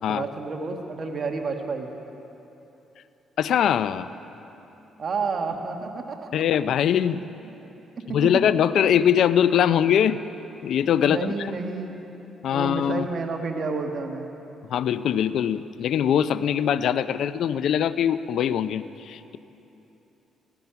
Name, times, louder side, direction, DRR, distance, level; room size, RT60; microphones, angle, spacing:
voice 1, 0.0-1.9 5.0-6.3 7.4-7.5 10.9-11.9 12.5-14.3, right 4 dB, 45° right, 3 dB, 1.5 m, -30 dB
voice 2, 3.4-4.1 6.3-7.2 8.1-10.2 10.6-11.2 12.4-13.1 14.7-19.4, left 9 dB, 70° left, 14 dB, 0.5 m, -22 dB
16.0 x 14.5 x 5.8 m, 3.0 s
cardioid pair, 90°, 0 cm